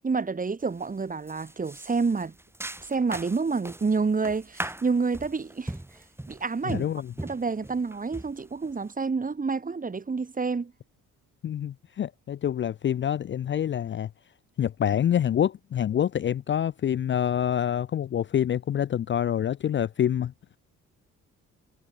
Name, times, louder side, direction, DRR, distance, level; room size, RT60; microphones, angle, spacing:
voice 1, 0.0-2.3 2.9-5.7 6.3-6.9 7.2-10.7, right 4 dB, 25° right, 2.5 m, -28 dB
Walking in slippers, 0.6-0.9 1.3-8.9, right 1 dB, 10° right, 3.4 m, -40 dB
voice 2, 6.7-7.1 11.4-14.1 14.6-20.3, left 10 dB, 40° left, 0.5 m, -26 dB
cardioid pair, 90°, 30 cm